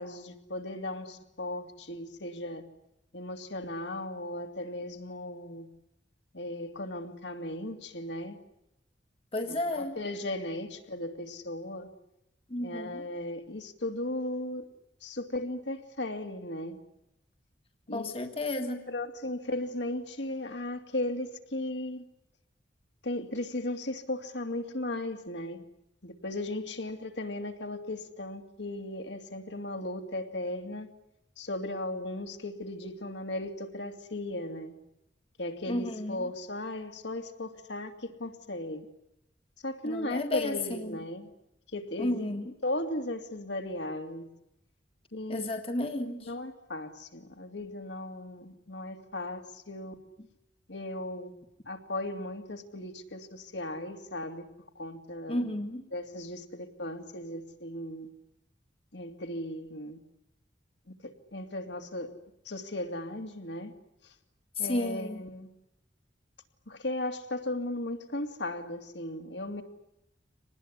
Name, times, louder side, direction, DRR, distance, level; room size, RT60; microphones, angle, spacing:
voice 1, 0.0-2.6 3.1-5.7 6.3-8.4 9.4-11.9 12.6-14.7 15.0-16.8 17.9-18.1 18.9-22.0 23.0-25.6 26.0-30.9 31.4-34.7 35.4-38.8 39.6-41.3 41.7-42.3 42.6-44.3 45.1-45.5 46.2-50.0 50.7-51.3 51.7-54.5 54.7-55.5 55.9-58.1 58.9-60.0 61.0-62.1 62.4-63.7 64.0-64.1 64.6-65.5 66.7-69.6, left 1 dB, 65° left, 2.7 m, -36 dB
voice 2, 9.3-9.9 12.5-13.0 17.9-18.8 35.7-36.3 39.8-40.5 40.8-41.0 42.0-42.5 45.3-46.3 55.3-55.8 64.6-65.2, left 1 dB, 30° left, 1.7 m, -32 dB
25.5 x 20.0 x 9.8 m
head